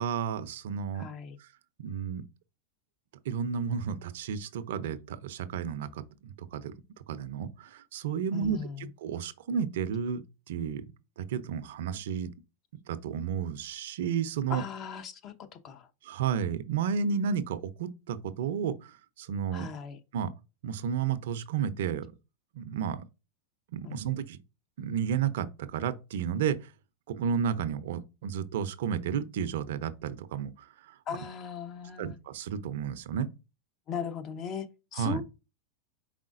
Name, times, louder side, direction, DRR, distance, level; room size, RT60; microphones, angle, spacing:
voice 1, 0.0-1.1 1.4-1.5 1.8-2.2 3.3-6.7 7.1-10.8 11.2-12.3 12.9-14.6 16.0-19.7 20.1-20.3 20.6-22.1 22.5-23.1 23.7-24.4 24.8-26.7 27.1-30.9 32.0-33.3 34.9-35.2, right 7 dB, 70° right, 0.5 m, -32 dB
voice 2, 0.9-1.4 8.3-8.9 14.5-15.9 19.5-20.0 23.8-24.2 31.1-32.2 33.9-34.7 34.9-35.2, left 6 dB, 40° left, 0.7 m, -38 dB
4.9 x 3.6 x 2.5 m
hypercardioid pair, 110°, 0 cm